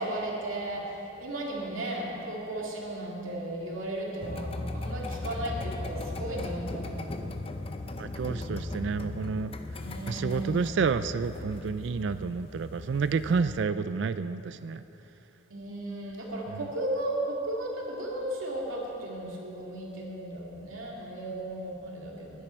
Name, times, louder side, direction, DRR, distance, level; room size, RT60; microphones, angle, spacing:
voice 1, 0.0-7.2 9.7-10.8 15.5-22.4, right 1 dB, 75° right, -3 dB, 2.6 m, -35 dB
sound 1, 4.2-13.6, left 2 dB, 25° left, 0.5 m, -38 dB
voice 2, 8.0-9.5 10.1-14.8 16.5-16.6, right 5 dB, 60° right, 13 dB, 0.3 m, -29 dB
20.5 x 10.0 x 4.5 m, 3.0 s
head